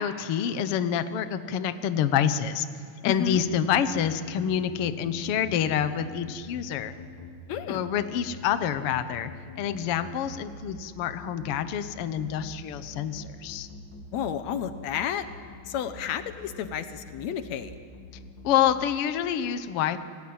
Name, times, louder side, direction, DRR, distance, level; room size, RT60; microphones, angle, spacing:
voice 1, 0.0-2.7 3.0-6.9 7.7-9.3 9.6-13.7 18.4-20.0, left 9 dB, 90° left, 10 dB, 1.2 m, -27 dB
voice 2, 3.0-3.4 7.5-7.8 14.1-15.2 15.7-17.8, left 9 dB, 65° left, 10 dB, 1.9 m, -31 dB
sound 1, 3.3-18.8, left 3 dB, 30° left, 3.8 m, -44 dB
28.5 x 19.5 x 8.7 m, 2.1 s
omnidirectional pair, 4.1 m